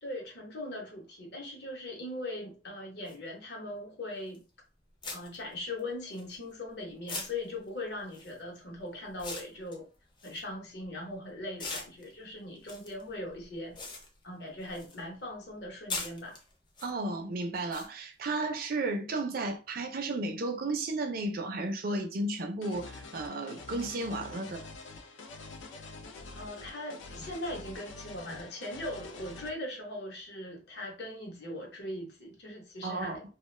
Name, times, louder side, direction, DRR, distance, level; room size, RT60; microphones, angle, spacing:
voice 1, 0.0-4.4 5.1-9.9 10.2-13.8 14.2-16.4 26.3-33.2, left 1 dB, 55° left, 0.9 m, -40 dB
sound 1, 3.1-3.2 4.3-4.5 5.0-6.7 7.1-11.1 11.6-15.0 15.3-16.9 17.7-17.9, left 3 dB, 25° left, 0.5 m, -42 dB
voice 2, 16.8-24.7 32.8-33.2, right 2 dB, 50° right, 0.4 m, -33 dB
sound 2, 22.6-29.5, left 3 dB, 80° left, 0.4 m, -46 dB
2.4 x 2.2 x 3.1 m
head